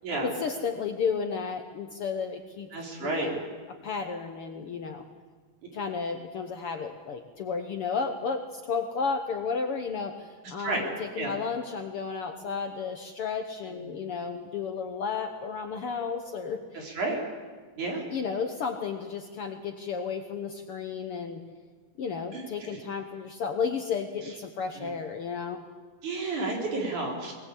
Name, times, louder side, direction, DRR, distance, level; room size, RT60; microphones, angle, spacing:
voice 1, 0.2-2.7 3.0-3.4 3.7-5.1 5.7-16.8 18.1-21.4 22.0-25.6, left 5 dB, 60° left, 5 dB, 1.6 m, -33 dB
voice 2, 2.7-3.3 10.6-10.9 11.2-11.4 13.8-14.0 16.7-17.2 17.8-18.0 22.3-22.4 22.7-22.8 24.8-24.9 26.0-27.3, right 2 dB, 70° right, 0 dB, 5.3 m, -31 dB
20.5 x 20.0 x 8.4 m, 1.4 s
omnidirectional pair, 3.6 m